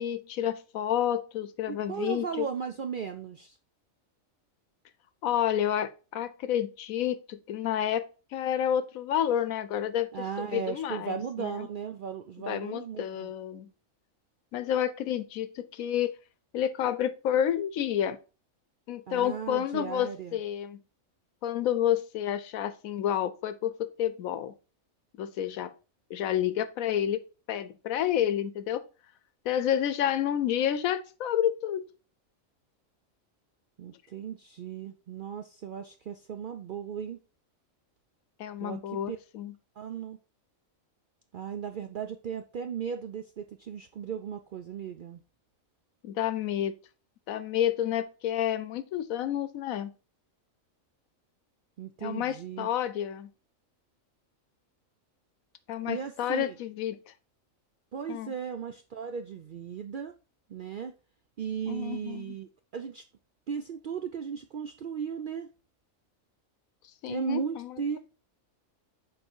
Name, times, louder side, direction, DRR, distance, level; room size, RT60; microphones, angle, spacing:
voice 1, 0.0-2.5 5.2-10.1 10.4-11.7 12.5-13.7 14.5-16.1 16.5-18.2 18.9-20.8 21.4-24.5 25.2-25.7 26.1-27.2 27.5-28.8 29.4-31.8 38.4-39.5 46.0-46.7 47.3-49.9 52.0-53.3 55.7-57.1 58.1-58.3 61.7-62.3 67.0-68.0, left 10 dB, 85° left, 1.1 m, -30 dB
voice 2, 1.7-3.6 10.1-13.3 19.1-20.4 33.8-37.2 38.6-39.2 39.8-40.2 41.3-45.2 51.8-52.7 55.9-56.6 57.9-60.1 60.5-60.9 61.4-63.0 63.5-65.5 67.1-68.0, right 7 dB, 70° right, 0.5 m, -36 dB
6.7 x 4.2 x 4.4 m
omnidirectional pair, 1.4 m